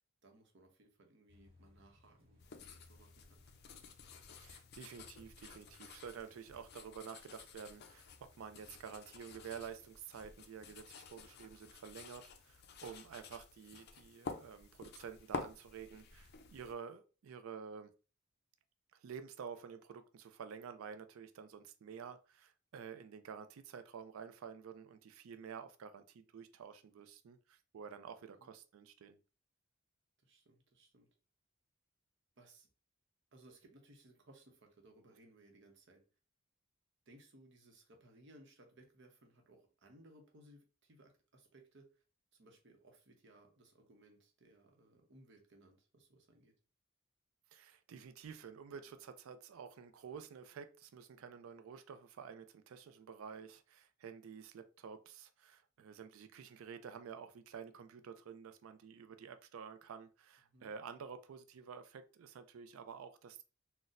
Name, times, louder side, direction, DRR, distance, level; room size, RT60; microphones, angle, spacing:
voice 1, 0.2-3.4 28.3-28.5 30.2-31.1 32.4-32.7 33.3-36.0 37.1-42.0 42.3-46.5 60.5-60.7, right 1 dB, 60° right, 0.8 m, -63 dB
sound 1, 1.3-12.1, left 2 dB, 25° right, 1.4 m, -67 dB
sound 2, 2.4-16.7, left 4 dB, 50° left, 0.4 m, -51 dB
voice 2, 4.4-17.9 18.9-29.2 47.5-63.4, right 6 dB, 80° right, 0.4 m, -50 dB
3.9 x 2.1 x 2.5 m
head